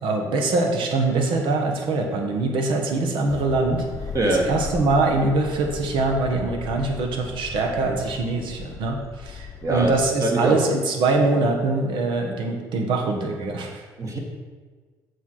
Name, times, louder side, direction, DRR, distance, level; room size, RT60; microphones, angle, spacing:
voice 1, 0.0-3.9 4.2-13.8, right 3 dB, 65° right, 2 dB, 1.3 m, -23 dB
sound 1, 3.3-10.1, left 5 dB, 35° left, 0.7 m, -37 dB
voice 2, 4.1-4.5 9.6-9.9 10.2-10.6 14.0-14.2, right 2 dB, 35° right, 0 dB, 1.9 m, -22 dB
7.0 x 4.3 x 6.4 m, 1.4 s
hypercardioid pair, 55°, 9 cm